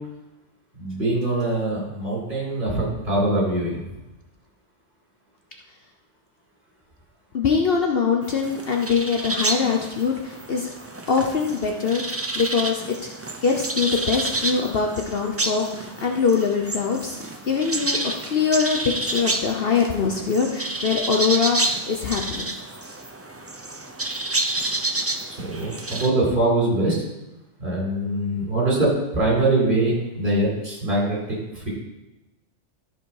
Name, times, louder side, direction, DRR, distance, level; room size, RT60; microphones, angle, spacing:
voice 1, 0.8-3.8 25.4-27.0 27.6-31.7, right 2 dB, 40° right, -5 dB, 4.4 m, -23 dB
voice 2, 7.3-10.7 11.1-13.0 13.4-18.0 18.3-22.5, left 5 dB, 55° left, 2 dB, 1.0 m, -23 dB
sound 1, 8.2-26.1, right 2 dB, 20° right, 0.4 m, -29 dB
13.5 x 5.2 x 4.8 m, 0.99 s
omnidirectional pair, 1.3 m